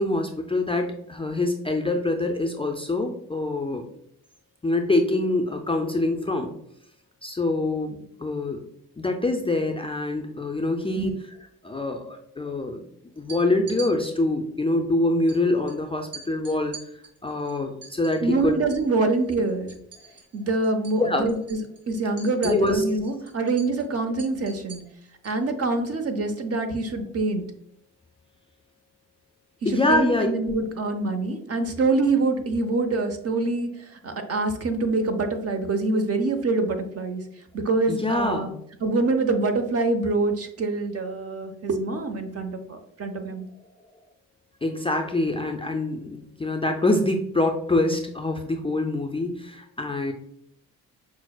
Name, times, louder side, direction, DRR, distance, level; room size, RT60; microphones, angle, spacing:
voice 1, 0.0-3.8 4.6-6.5 7.2-8.6 9.0-11.2 11.6-12.8 13.2-16.7 17.2-18.6 21.0-21.3 22.4-22.8 29.6-30.3 37.9-38.5 44.6-50.1, left 2 dB, 15° left, 2 dB, 0.4 m, -25 dB
sound 1, 13.2-13.9 15.3-15.4 15.7-15.8 16.1-18.9 19.2-20.4 20.6-21.0 21.3-25.4, right 4 dB, 65° right, 1.1 m, -43 dB
voice 2, 18.2-19.7 20.3-21.6 21.9-24.8 25.2-27.4 29.7-33.7 34.0-37.2 37.5-38.5 38.8-43.5, right 3 dB, 40° right, 6 dB, 0.7 m, -25 dB
5.8 x 2.0 x 2.3 m, 0.69 s
hypercardioid pair, 45°, 37 cm